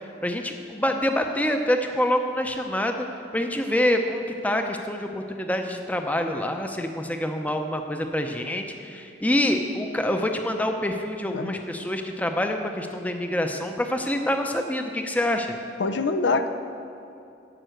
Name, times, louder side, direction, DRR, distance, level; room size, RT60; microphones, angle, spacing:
voice 1, 0.2-3.1 3.3-15.5, left 1 dB, 10° left, 4 dB, 0.6 m, -26 dB
voice 2, 15.8-16.5, left 3 dB, 80° left, 8 dB, 0.6 m, -24 dB
13.0 x 5.5 x 7.8 m, 2.7 s
head